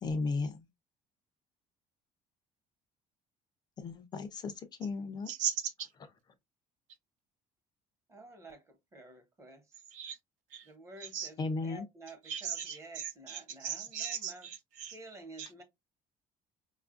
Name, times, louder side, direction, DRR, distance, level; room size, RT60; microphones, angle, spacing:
voice 1, 0.0-0.7 3.8-5.3 11.4-11.9, left 3 dB, 30° left, 0.4 m, -35 dB
voice 2, 5.3-5.9 9.9-10.2 10.5-10.7 11.0-11.3 12.3-14.9 15.4-15.5, right 8 dB, 65° right, 0.7 m, -38 dB
voice 3, 8.1-9.8 10.6-14.5 14.9-15.6, right 2 dB, 20° right, 1.0 m, -51 dB
5.2 x 2.4 x 2.4 m
cardioid pair, 175°, 14 cm